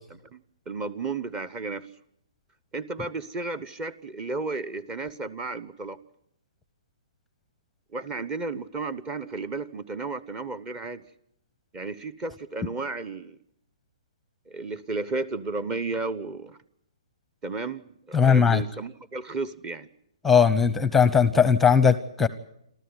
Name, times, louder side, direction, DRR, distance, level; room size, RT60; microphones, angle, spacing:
voice 1, 0.3-1.9 2.7-6.0 7.9-11.0 11.7-13.4 14.5-16.6 17.4-19.9, right 3 dB, 20° right, 17 dB, 1.0 m, -33 dB
voice 2, 18.1-18.6 20.2-22.3, left 6 dB, 5° left, 15 dB, 0.8 m, -19 dB
28.0 x 13.5 x 9.7 m, 0.76 s
hypercardioid pair, 145°, 3 cm